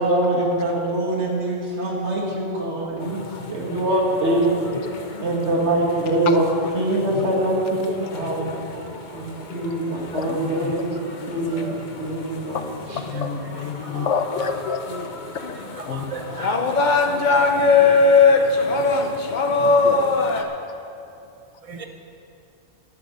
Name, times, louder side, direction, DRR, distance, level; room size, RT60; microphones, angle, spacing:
voice 1, 0.0-4.6 5.2-6.5 6.7-8.5 9.1-12.6 12.9-13.0, right 1 dB, 65° right, -2 dB, 2.3 m, -23 dB
sound 1, 3.0-20.4, left 4 dB, 45° left, 0.9 m, -23 dB
voice 2, 10.1-10.9 12.9-14.9 15.9-16.1 17.3-18.2 18.7-18.8 19.5-20.1, left 5 dB, 75° left, 7 dB, 1.1 m, -29 dB
voice 3, 15.9-16.6 21.7-21.8, right 5 dB, 30° right, 4 dB, 0.9 m, -35 dB
12.0 x 8.7 x 6.5 m, 2.6 s
omnidirectional pair, 1.2 m